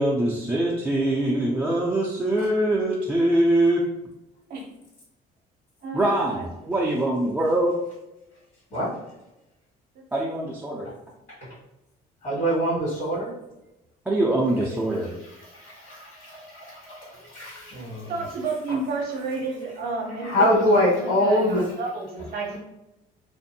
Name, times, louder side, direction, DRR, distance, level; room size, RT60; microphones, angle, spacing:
voice 1, 0.0-3.9 5.9-7.8 10.1-10.9 14.1-15.1, right 1 dB, 5° right, -5 dB, 0.4 m, -23 dB
voice 2, 5.8-7.0 17.1-17.7 18.1-20.7 20.9-22.6, right 3 dB, 65° right, -2 dB, 0.6 m, -32 dB
voice 3, 12.2-13.3 15.4-18.1 20.2-21.6, equal, 45° left, -9 dB, 1.5 m, -24 dB
2.5 x 2.5 x 2.7 m, 0.95 s
cardioid pair, 110°, 17 cm